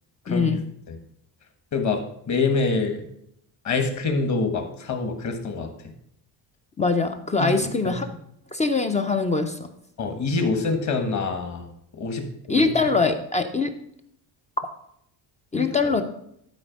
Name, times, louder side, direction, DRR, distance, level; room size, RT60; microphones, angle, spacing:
voice 1, 0.3-0.6 6.8-8.1 8.5-9.7 12.5-13.7 15.5-16.0, left 4 dB, 15° left, 7 dB, 0.4 m, -23 dB
voice 2, 2.3-3.0 3.6-5.7 7.4-7.6 7.8-7.9 10.0-11.7 12.0-12.7 15.6-15.7, left 4 dB, 35° left, 6 dB, 1.4 m, -25 dB
12.0 x 4.2 x 5.2 m, 0.73 s
cardioid pair, 160°, 46 cm